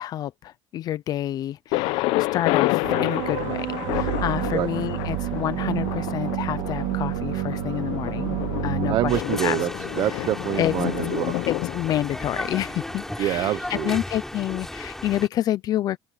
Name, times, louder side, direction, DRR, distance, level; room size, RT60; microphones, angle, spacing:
voice 1, 0.0-8.4 8.6-9.6 10.0-10.3 10.6-10.7 11.5-16.0, left 12 dB, 45° left, 0.7 m, -28 dB
Thunder, 1.7-13.5, left 19 dB, 75° left, 0.9 m, -29 dB
sound 1, 2.8-9.2, right 18 dB, 80° right, 2.9 m, -29 dB
voice 2, 8.9-11.5 13.2-14.0, right 13 dB, 45° right, 0.8 m, -26 dB
sound 2, 9.1-15.3, left 1 dB, 5° left, 4.9 m, -35 dB
open air
cardioid pair, 155°, 9 cm